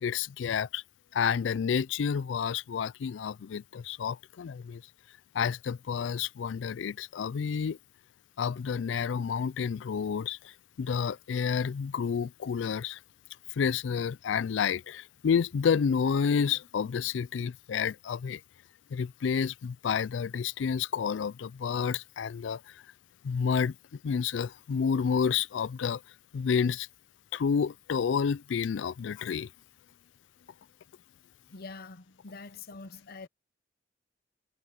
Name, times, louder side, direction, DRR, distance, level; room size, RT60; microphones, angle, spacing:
voice 1, 0.0-0.8 1.1-4.8 5.3-7.8 8.4-10.4 10.8-13.0 13.6-18.4 18.9-22.6 23.2-23.7 24.0-26.0 26.3-26.9 27.3-29.5, left 6 dB, 70° left, 0.4 m, -29 dB
voice 2, 31.5-33.3, left 4 dB, 55° left, 0.8 m, -45 dB
head